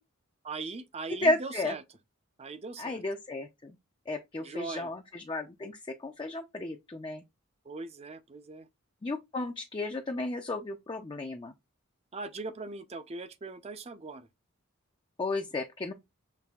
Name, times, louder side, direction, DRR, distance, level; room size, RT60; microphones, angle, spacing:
voice 1, 0.4-1.8 2.4-3.0 4.4-4.9 7.6-8.7 12.1-14.3, right 3 dB, 30° right, 0.5 m, -40 dB
voice 2, 1.2-1.8 2.8-3.8 4.1-7.2 9.0-11.5 15.2-15.9, left 2 dB, 25° left, 0.4 m, -33 dB
5.9 x 3.2 x 2.3 m
head